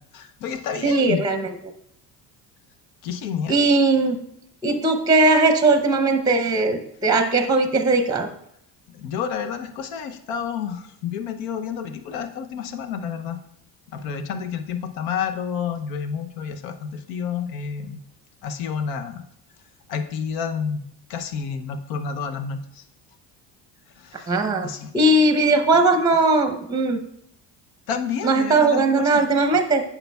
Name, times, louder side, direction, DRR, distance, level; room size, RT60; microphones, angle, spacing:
voice 1, 0.1-1.2 3.0-3.6 8.9-13.4 13.9-18.0 18.4-19.2 19.9-20.8 21.1-22.8 24.0-24.3 24.6-24.9 27.9-29.2, left 7 dB, 80° left, 8 dB, 0.8 m, -30 dB
voice 2, 0.8-1.5 3.5-4.2 4.6-8.3 24.3-24.7 24.9-27.0 28.2-29.8, right 2 dB, 10° right, 7 dB, 0.7 m, -19 dB
8.8 x 5.7 x 2.3 m, 0.73 s
hypercardioid pair, 70°, 48 cm